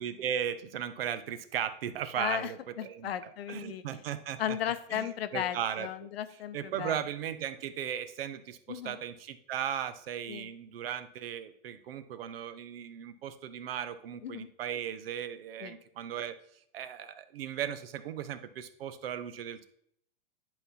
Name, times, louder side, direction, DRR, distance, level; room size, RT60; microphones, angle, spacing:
voice 1, 0.0-3.1 3.5-4.6 4.9-5.9 6.5-16.3 16.7-19.6, right 9 dB, 70° right, 12 dB, 0.9 m, -37 dB
voice 2, 2.2-4.0 4.4-7.0 8.7-9.0 10.3-10.5 14.2-14.5 15.6-15.7, left 10 dB, 80° left, 12 dB, 0.8 m, -36 dB
10.5 x 4.2 x 4.1 m, 0.69 s
supercardioid pair, 160°, 30 cm